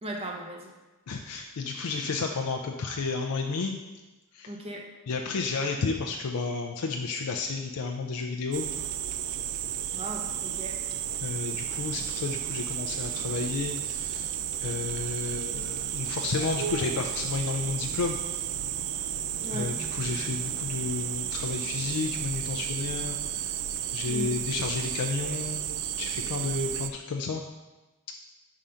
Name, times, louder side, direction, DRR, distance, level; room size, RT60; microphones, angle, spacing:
voice 1, 0.0-0.7 4.5-4.9 9.9-10.8 19.4-19.8 24.0-24.4, right 1 dB, 25° right, 1 dB, 0.7 m, -37 dB
voice 2, 1.1-3.8 4.3-4.5 5.1-8.7 11.2-14.3 14.6-18.2 19.5-23.2 23.9-25.6 26.0-27.4, left 4 dB, 90° left, 3 dB, 0.4 m, -31 dB
sound 1, 8.5-26.9, right 10 dB, 85° right, 0.3 m, -33 dB
sound 2, 16.3-22.3, equal, 45° left, 0.7 m, -51 dB
5.1 x 3.7 x 5.6 m, 1.1 s
head